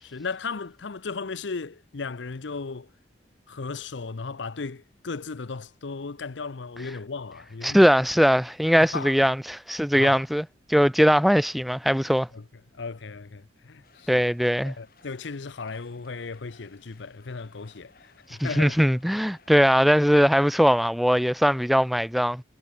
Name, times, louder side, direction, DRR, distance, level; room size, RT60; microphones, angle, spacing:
voice 1, 0.0-2.9 3.5-7.9 8.8-9.3 9.9-10.2 12.3-12.4 12.7-14.3 14.6-18.8, left 4 dB, 80° left, 0.7 m, -36 dB
voice 2, 7.6-10.4 10.7-12.3 14.1-14.7 18.4-22.4, equal, ahead, 0.3 m, -20 dB
sound 1, 13.8-20.8, left 4 dB, 50° left, 5.4 m, -59 dB
head